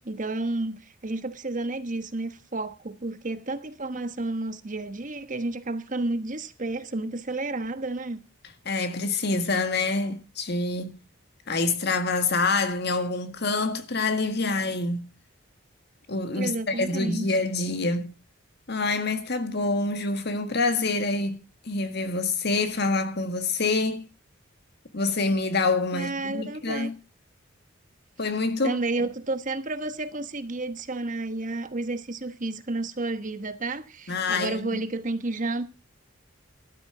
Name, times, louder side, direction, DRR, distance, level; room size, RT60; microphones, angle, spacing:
voice 1, 0.0-8.2 16.3-17.2 25.9-26.9 28.6-35.6, right 2 dB, 40° right, 1.2 m, -31 dB
voice 2, 8.6-10.9 11.5-15.1 16.1-18.1 18.7-21.4 21.6-24.0 24.9-26.9 28.2-29.1 34.1-34.8, left 3 dB, 55° left, 1.7 m, -26 dB
13.0 x 12.5 x 4.8 m
head